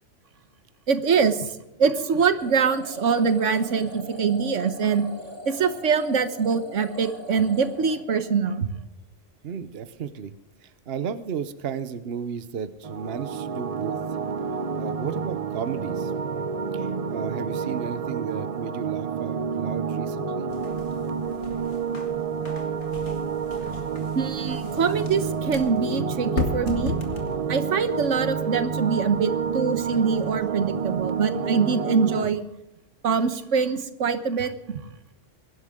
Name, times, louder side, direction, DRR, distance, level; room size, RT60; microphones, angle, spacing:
voice 1, 0.9-1.5 1.8-5.1 5.5-8.7 24.1-26.9 27.2-32.4 33.0-34.8, right 6 dB, 90° right, 11 dB, 1.4 m, -24 dB
sound 1, 2.4-8.5, left 1 dB, 45° left, 2.3 m, -41 dB
voice 2, 9.4-10.4 10.6-14.0 14.7-16.1 16.7-20.5, right 7 dB, 55° right, 12 dB, 1.1 m, -33 dB
sound 2, 12.8-32.3, right 6 dB, 40° right, 0.6 m, -29 dB
sound 3, 20.5-31.3, left 4 dB, 70° left, 2.2 m, -38 dB
22.0 x 11.0 x 3.7 m, 0.88 s
omnidirectional pair, 1.2 m